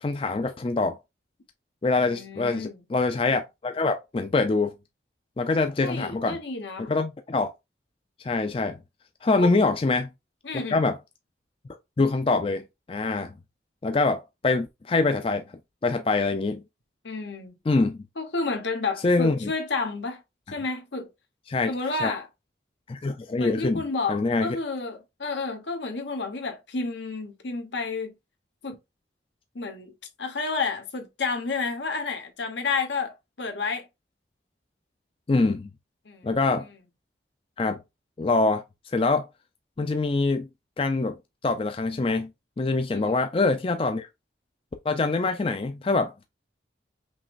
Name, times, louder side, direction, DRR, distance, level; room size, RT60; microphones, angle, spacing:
voice 1, 0.0-1.0 1.8-4.7 5.4-6.4 6.9-7.5 8.2-8.8 9.2-10.1 10.7-11.0 12.0-13.3 13.8-15.4 15.8-16.6 17.7-18.1 19.0-19.5 21.5-21.7 22.0-22.1 22.9-23.8 24.1-24.6 35.3-35.7 36.2-36.7 37.6-37.8 38.2-38.6 38.9-39.3 39.8-40.5 40.8-41.2 41.4-42.3 42.6-44.1 44.8-46.3, left 3 dB, 30° left, 0.4 m, -24 dB
voice 2, 2.0-2.8 5.8-6.9 9.4-9.5 10.4-10.8 17.0-17.6 18.2-20.2 20.5-21.1 21.7-22.3 23.3-28.1 28.6-28.8 29.5-29.9 30.2-33.9 36.0-36.3 36.6-36.7 42.9-43.2, left 4 dB, 80° left, 1.2 m, -31 dB
5.3 x 3.1 x 2.5 m
head